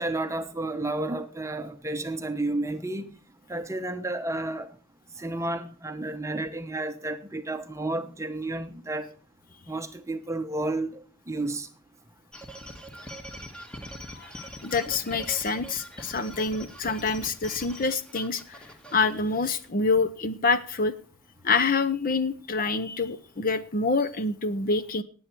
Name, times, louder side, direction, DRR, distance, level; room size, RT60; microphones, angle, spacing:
voice 1, 0.0-3.1 3.5-4.7 5.2-9.1 9.7-11.7, right 2 dB, 15° right, 0.9 m, -31 dB
sound 1, 12.3-19.7, equal, 5° left, 1.4 m, -43 dB
voice 2, 14.6-18.6 18.9-20.9 21.4-25.0, left 4 dB, 40° left, 0.7 m, -26 dB
18.5 x 8.0 x 4.5 m
head